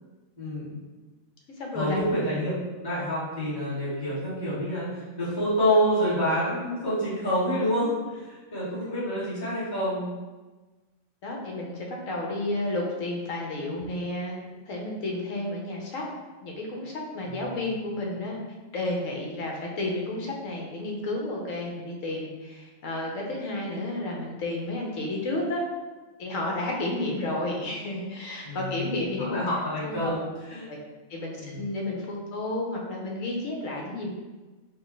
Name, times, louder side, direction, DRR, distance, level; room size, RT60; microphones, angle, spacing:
voice 1, 0.4-0.8 1.7-7.9 8.2-10.1 13.6-13.8 17.2-17.5 28.4-30.7 31.4-31.6, equal, 15° left, -11 dB, 1.4 m, -28 dB
voice 2, 1.6-2.2 11.2-16.0 16.4-18.4 18.7-25.6 26.2-29.5 29.8-30.2 30.7-30.8 31.1-34.1, left 2 dB, 70° left, -1 dB, 1.1 m, -31 dB
4.6 x 2.3 x 3.1 m, 1.2 s
omnidirectional pair, 1.4 m